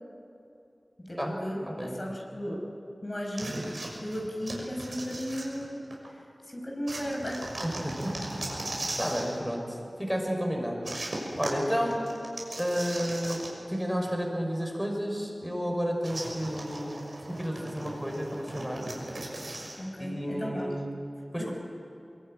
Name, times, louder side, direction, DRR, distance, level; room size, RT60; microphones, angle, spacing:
voice 1, 1.0-2.6 3.0-3.6 4.0-5.8 6.5-7.5 19.8-20.7 21.4-21.5, equal, 35° left, -1 dB, 5.0 m, -35 dB
voice 2, 1.7-2.0 7.6-8.2 8.8-10.8 11.4-12.0 12.6-13.4 13.7-17.0 17.4-18.8 20.0-20.8 21.3-21.5, equal, 5° right, 1 dB, 5.8 m, -31 dB
sound 1, 3.4-6.1 6.9-9.4 10.8-13.8 14.1-14.2 16.0-19.8, right 1 dB, 65° right, 6.1 m, -38 dB
23.5 x 23.0 x 9.5 m, 2.7 s
wide cardioid pair, 55°, 0 cm